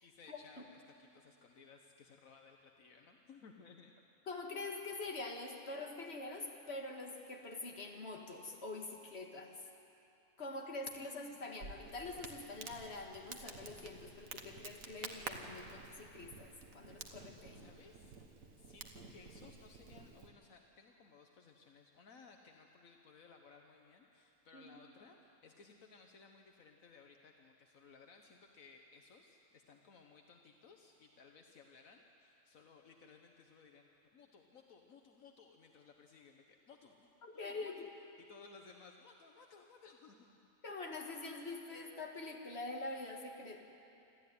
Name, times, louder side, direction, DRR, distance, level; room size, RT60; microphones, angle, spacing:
voice 1, 0.0-4.0 10.9-11.5 17.6-18.2 18.6-37.9 38.2-40.4, left 4 dB, 75° left, 3 dB, 1.5 m, -60 dB
voice 2, 4.3-9.7 10.4-17.6 24.5-24.8 37.2-37.8 40.6-43.6, left 3 dB, 50° left, 1 dB, 2.3 m, -45 dB
Crackle, 11.6-20.3, right 4 dB, 75° right, 1.8 m, -51 dB
27.0 x 13.0 x 9.5 m, 2.8 s
omnidirectional pair, 1.4 m